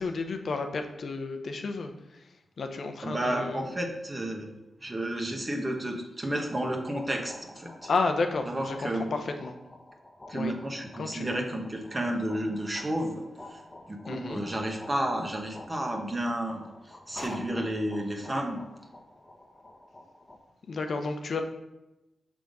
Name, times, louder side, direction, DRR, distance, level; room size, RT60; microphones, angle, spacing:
voice 1, 0.0-1.9 2.6-3.6 5.3-5.4 7.9-9.6 10.3-10.6 11.0-11.4 14.1-14.4 20.7-21.4, left 3 dB, 65° left, 6 dB, 0.6 m, -31 dB
voice 2, 3.0-4.5 4.8-7.9 8.5-9.1 10.3-13.2 13.5-13.6 13.9-16.7 17.1-18.6, right 1 dB, 25° right, 3 dB, 1.0 m, -31 dB
sound 1, 6.5-20.4, left 1 dB, 25° left, 0.8 m, -49 dB
6.2 x 3.5 x 5.2 m, 0.95 s
cardioid pair, 70°, 0 cm